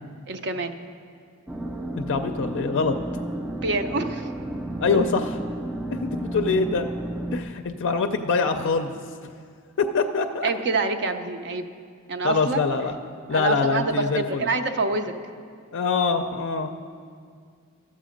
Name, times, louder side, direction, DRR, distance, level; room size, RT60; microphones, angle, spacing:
voice 1, 0.3-0.7 3.5-4.3 10.4-11.7 12.1-12.7 13.3-15.1, right 3 dB, 50° right, 7 dB, 0.6 m, -26 dB
sound 1, 1.5-7.4, right 1 dB, 5° right, 0.4 m, -32 dB
voice 2, 2.0-2.9 4.8-5.2 5.9-6.9 7.3-9.0 9.8-10.5 12.2-13.0 13.3-14.5 15.7-16.7, left 4 dB, 60° left, 6 dB, 0.4 m, -24 dB
12.5 x 7.5 x 5.1 m, 2.1 s
head